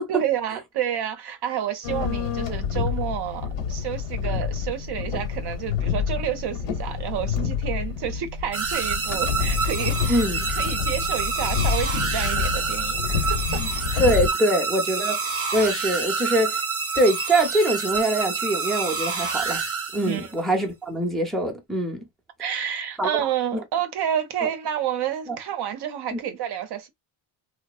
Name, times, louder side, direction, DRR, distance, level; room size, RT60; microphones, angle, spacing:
voice 1, 0.1-13.6 13.9-14.0 20.1-20.3 22.4-26.9, right 10 dB, 55° right, 0.6 m, -29 dB
sound 1, 1.8-14.3, left 7 dB, 65° left, 1.0 m, -28 dB
sound 2, 8.5-20.4, right 5 dB, 30° right, 0.9 m, -28 dB
voice 2, 10.1-10.5 14.0-16.6 17.0-19.6 19.9-22.0 23.0-23.1 23.5-23.6 25.3-25.4 26.1-26.2, right 1 dB, ahead, 0.6 m, -23 dB
2.6 x 2.0 x 2.3 m
cardioid pair, 95°, 48 cm